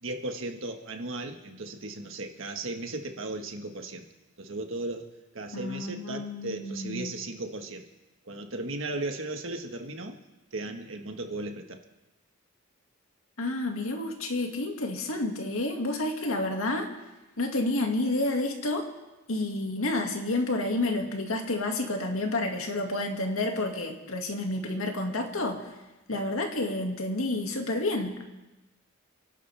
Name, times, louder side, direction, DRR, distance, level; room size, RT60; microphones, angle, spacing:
voice 1, 0.0-4.1 4.4-5.1 5.3-7.8 8.2-10.2 10.5-11.8, right 2 dB, 65° right, 4 dB, 1.6 m, -36 dB
voice 2, 5.5-7.1 13.4-16.9 17.4-18.9 19.3-25.7 26.1-28.2, left 2 dB, 85° left, 2 dB, 2.1 m, -30 dB
29.5 x 11.5 x 3.5 m, 1.1 s
head